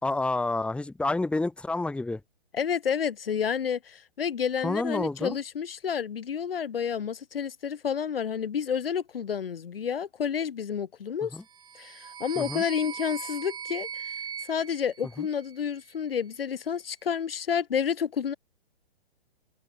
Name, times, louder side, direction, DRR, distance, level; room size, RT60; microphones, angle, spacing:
voice 1, 0.0-2.2 4.6-5.4 11.3-11.4 12.4-12.6 15.2-15.3, left 2 dB, 5° left, 2.3 m, -29 dB
voice 2, 2.5-11.4 11.8-14.0 14.5-18.3, left 7 dB, 70° left, 2.4 m, -30 dB
sound 1, 11.5-15.8, right 7 dB, 15° right, 6.4 m, -40 dB
figure-of-eight pair, 130°, 30 cm